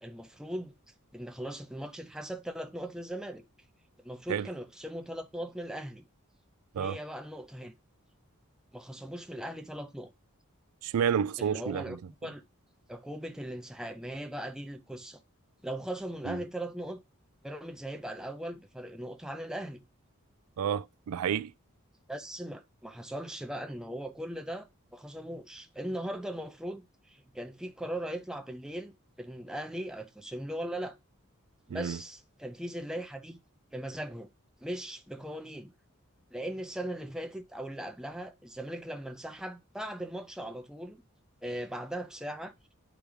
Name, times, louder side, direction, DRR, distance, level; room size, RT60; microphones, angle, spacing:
voice 1, 0.0-0.7 1.1-3.4 4.0-6.0 6.8-7.7 8.7-10.1 11.4-12.0 12.2-12.4 12.9-15.2 15.6-17.0 17.4-19.8 22.1-28.9 29.2-31.0 31.7-33.4 33.7-34.3 34.6-35.7 36.3-41.0 41.4-42.5, right 1 dB, 5° right, 0.5 m, -39 dB
voice 2, 10.8-12.0 16.3-16.4 20.6-21.5 31.7-32.0, right 8 dB, 85° right, 0.3 m, -30 dB
8.6 x 5.0 x 3.2 m
head